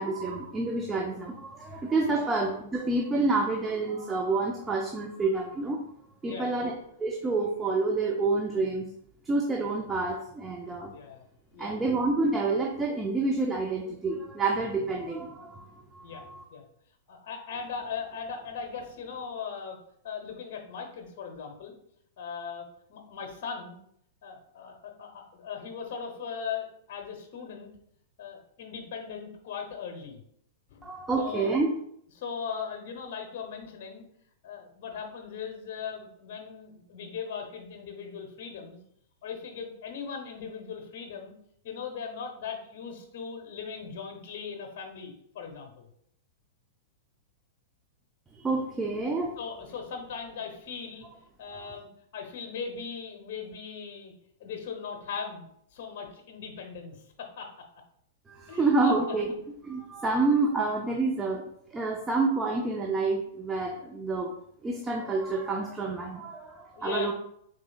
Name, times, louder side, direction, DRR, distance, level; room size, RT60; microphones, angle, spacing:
voice 1, 0.0-5.8 6.2-6.7 7.0-8.8 9.3-10.9 11.6-16.4 30.8-31.7 48.3-49.4 58.3-59.3 59.6-61.4 61.7-64.3 64.6-67.1, right 3 dB, 15° right, 0 dB, 0.6 m, -28 dB
voice 2, 6.2-6.8 10.9-11.3 11.5-11.9 16.0-16.2 16.5-16.6 17.1-19.8 20.0-21.7 22.2-23.8 24.2-27.7 28.2-30.2 30.7-30.9 31.2-31.5 32.2-34.1 34.4-38.8 39.2-41.3 41.6-45.9 49.4-51.1 51.4-51.9 52.1-54.1 54.4-57.5 58.5-59.0 66.7-67.1, left 6 dB, 55° left, 4 dB, 1.0 m, -39 dB
4.9 x 3.9 x 2.4 m, 0.70 s
hypercardioid pair, 110°, 0 cm